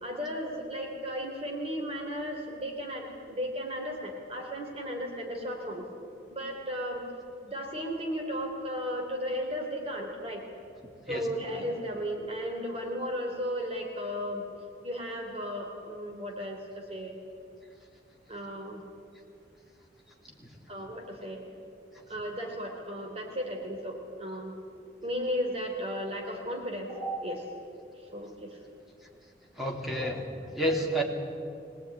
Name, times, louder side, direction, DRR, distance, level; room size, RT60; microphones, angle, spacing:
voice 1, 0.0-5.9 6.3-7.0 7.4-10.4 11.1-14.5 14.8-17.2 18.3-18.8 20.7-21.4 22.1-24.5 25.0-27.4 28.0-28.6 29.9-30.1 30.4-30.6, equal, 35° right, 1 dB, 3.6 m, -35 dB
voice 2, 29.6-30.2 30.6-31.0, right 1 dB, ahead, -1 dB, 3.4 m, -29 dB
23.0 x 19.0 x 9.8 m, 2.5 s
head